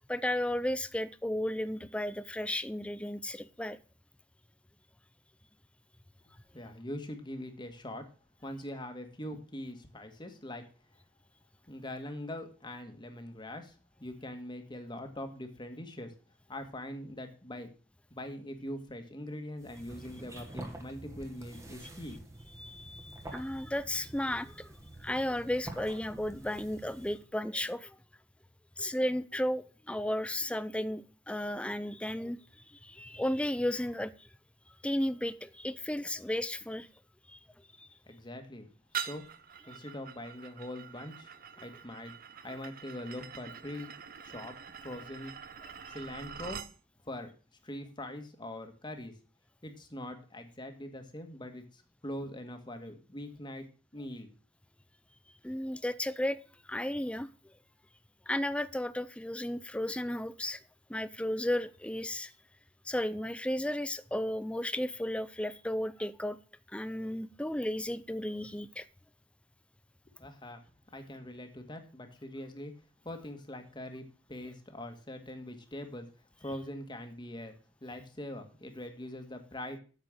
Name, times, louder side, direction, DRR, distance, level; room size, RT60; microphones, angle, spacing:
voice 1, 0.1-3.8 22.6-24.7 25.0-27.9 28.8-32.4 32.8-34.1 34.8-36.9 37.3-37.4 37.8-37.9 45.8-46.0 55.4-56.4 56.7-57.3 58.3-60.6 60.9-62.3 62.9-66.4 66.7-68.8, left 1 dB, 5° left, 0.5 m, -34 dB
voice 2, 6.2-8.0 8.4-10.6 11.7-16.1 16.5-17.7 18.1-22.2 38.1-38.7 38.9-39.2 39.7-42.1 42.4-43.9 44.2-44.5 44.8-45.3 45.9-46.6 47.1-47.3 47.6-49.1 49.6-53.7 53.9-54.3 70.1-70.6 70.9-72.7 73.0-76.1 76.4-77.5 77.8-79.8, left 1 dB, 25° left, 1.7 m, -42 dB
sound 1, 19.6-27.3, right 1 dB, 15° right, 1.6 m, -47 dB
sound 2, 38.9-46.7, right 8 dB, 55° right, 0.7 m, -44 dB
8.9 x 7.5 x 6.3 m
head